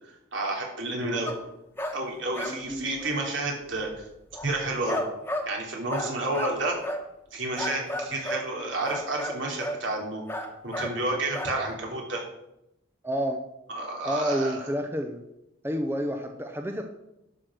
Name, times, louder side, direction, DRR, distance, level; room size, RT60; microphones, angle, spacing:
voice 1, 0.3-1.3 1.9-4.1 4.4-5.0 5.4-6.8 7.3-10.2 10.6-12.2 13.7-14.7, right 2 dB, 70° right, -1 dB, 3.3 m, -30 dB
sound 1, 1.3-1.4 1.8-2.0 2.3-2.7 3.0-3.2 3.9-4.0 4.3-5.5 5.9-6.6 6.8-7.1 7.6-8.5 8.9-9.8 10.3-11.0 11.3-11.5, left 1 dB, 10° left, 1.4 m, -32 dB
voice 2, 2.5-2.9 13.0-13.4 14.0-15.2 15.6-16.8, equal, 10° right, 4 dB, 0.8 m, -29 dB
11.5 x 6.2 x 6.2 m, 0.86 s
head